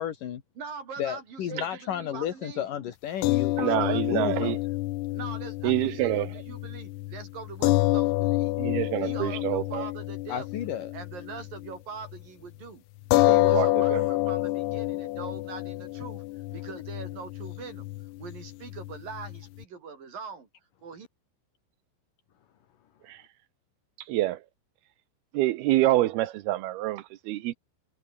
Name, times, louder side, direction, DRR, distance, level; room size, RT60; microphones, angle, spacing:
voice 1, 0.0-0.4 1.0-4.6 10.3-10.9, left 10 dB, 55° left, 2.7 m, -33 dB
voice 2, 0.6-2.7 3.5-4.1 5.1-8.6 9.0-10.5 10.9-12.8 13.3-16.2 16.5-17.9 18.2-20.5 20.8-21.1, right 5 dB, 45° right, 5.6 m, -42 dB
sound 1, 3.2-11.7 12.0-12.2 13.1-19.6, left 19 dB, 85° left, 3.6 m, -28 dB
voice 3, 3.6-4.6 5.6-6.3 8.6-9.8 13.3-14.0 23.1-23.2 24.1-24.4 25.3-27.5, right 15 dB, 90° right, 2.2 m, -27 dB
omnidirectional pair, 5.9 m